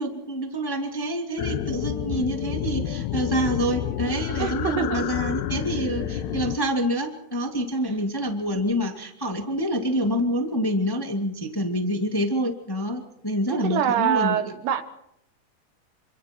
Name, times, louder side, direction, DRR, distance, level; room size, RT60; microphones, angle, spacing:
voice 1, 0.0-14.4, equal, 30° left, 3 dB, 0.4 m, -27 dB
sound 1, 1.4-6.6, left 10 dB, 70° left, 2.8 m, -29 dB
voice 2, 4.4-5.1 13.5-14.8, right 9 dB, 70° right, 10 dB, 3.1 m, -25 dB
27.5 x 26.5 x 4.5 m, 0.76 s
omnidirectional pair, 5.2 m